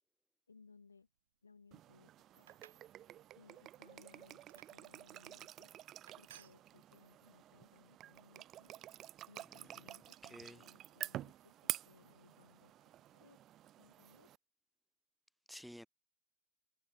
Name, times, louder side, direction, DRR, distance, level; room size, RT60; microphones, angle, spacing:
voice 1, 0.5-1.1 1.4-2.5 3.3-5.7 6.2-8.7 9.3-13.4 13.8-14.3, left 4 dB, 75° left, 3.3 m, -65 dB
sound 1, 1.7-14.4, right 12 dB, 30° right, 1.1 m, -49 dB
sound 2, 2.3-2.9 3.4-3.7 4.5-4.7 5.5-5.7 6.1-6.6, right 12 dB, 60° right, 2.3 m, -59 dB
voice 2, 9.5-9.8 10.2-10.7 15.5-15.9, equal, ahead, 0.9 m, -53 dB
figure-of-eight pair, 90°, 0 cm